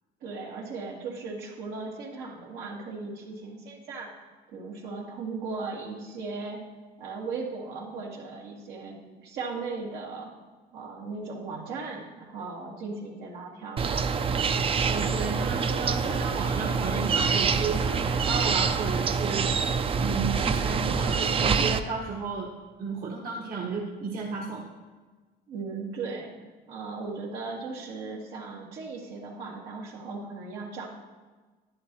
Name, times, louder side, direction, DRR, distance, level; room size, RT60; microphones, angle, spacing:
voice 1, 0.2-4.1 4.5-6.6 7.0-10.3 10.7-14.1 25.5-26.4 26.7-30.9, right 4 dB, 85° right, -3 dB, 2.1 m, -37 dB
sound 1, 13.8-21.8, right 5 dB, 35° right, 0.5 m, -26 dB
voice 2, 14.8-22.5 22.8-24.6, right 4 dB, 60° right, -3 dB, 1.5 m, -33 dB
11.0 x 10.5 x 3.1 m, 1.3 s
cardioid pair, 110°, 17 cm